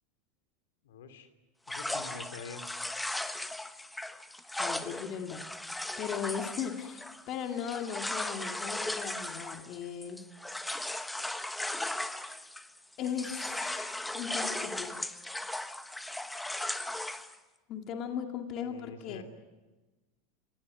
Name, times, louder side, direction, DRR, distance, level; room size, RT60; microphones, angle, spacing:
voice 1, 0.8-1.3 1.7-2.6 18.6-19.2, left 6 dB, 80° left, 8 dB, 2.8 m, -46 dB
sound 1, 1.7-12.8 13.0-17.4, left 1 dB, 5° left, 1.2 m, -37 dB
voice 2, 4.6-5.5 6.0-10.2 13.0-15.1 17.7-19.2, left 8 dB, 45° left, 4 dB, 2.3 m, -38 dB
27.5 x 18.5 x 9.4 m, 1.2 s
hypercardioid pair, 110°, 0 cm